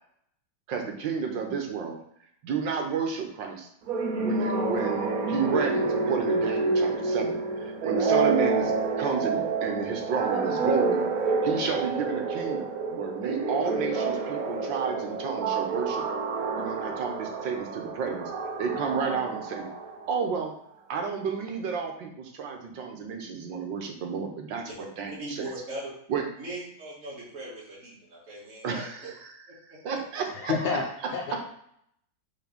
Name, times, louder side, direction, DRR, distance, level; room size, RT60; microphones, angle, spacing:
voice 1, 0.7-2.0 2.4-3.7 4.2-8.7 9.0-11.0 11.4-16.0 16.6-18.3 18.6-19.7 20.1-20.5 20.9-24.6 25.0-25.4 26.1-26.3 28.6-29.5 29.8-30.5, right 6 dB, 75° right, 3 dB, 1.7 m, -31 dB
sound 1, 3.9-20.3, right 3 dB, 60° right, 1.1 m, -28 dB
voice 2, 25.1-25.9 26.4-28.9 29.7-30.0, right 1 dB, 45° right, -7 dB, 2.4 m, -40 dB
voice 3, 30.3-31.6, left 5 dB, 65° left, 0 dB, 1.3 m, -30 dB
5.9 x 3.3 x 5.3 m, 0.70 s
omnidirectional pair, 2.0 m